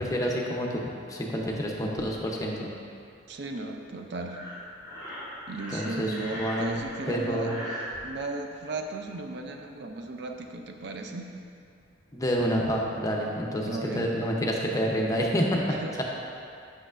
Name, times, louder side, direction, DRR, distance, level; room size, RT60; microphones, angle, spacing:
voice 1, 0.0-2.7 5.7-6.7 7.1-7.6 12.1-16.0, equal, 15° left, -1 dB, 0.6 m, -28 dB
voice 2, 3.3-4.4 5.5-7.5 8.0-11.3 13.7-14.1 15.7-16.0, right 2 dB, 60° right, 3 dB, 0.4 m, -35 dB
Breathing, 4.3-8.0, equal, 20° right, 1.4 m, -39 dB
7.7 x 6.3 x 2.4 m, 2.4 s
head